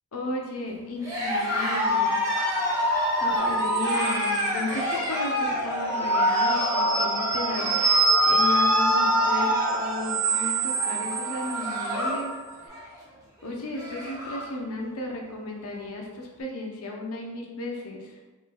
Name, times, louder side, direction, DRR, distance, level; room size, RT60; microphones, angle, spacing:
voice 1, 0.1-2.2 2.6-2.9 3.2-12.3 13.4-18.2, left 2 dB, 70° left, 0 dB, 0.7 m, -34 dB
Cheering, 1.0-12.3 12.6-13.0 13.4-13.5 13.7-14.5, left 1 dB, 15° right, 1.2 m, -28 dB
sound 1, 3.4-4.8 5.7-12.4, right 2 dB, 55° right, 0.8 m, -25 dB
5.5 x 3.1 x 2.3 m, 1.2 s
head